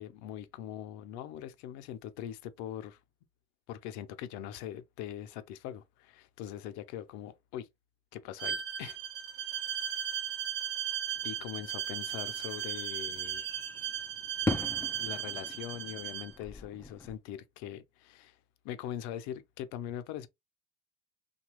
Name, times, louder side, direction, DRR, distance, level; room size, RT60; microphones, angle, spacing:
voice 1, 0.0-3.0 3.7-7.7 8.1-9.0 9.9-10.0 11.2-13.5 15.0-18.4 18.6-20.3, left 11 dB, 60° left, 0.6 m, -42 dB
Bowed string instrument, 8.4-16.3, right 10 dB, 45° right, 0.7 m, -36 dB
sound 1, 11.1-17.1, left 2 dB, 10° left, 0.4 m, -40 dB
2.9 x 2.3 x 3.0 m
hypercardioid pair, 70°, 31 cm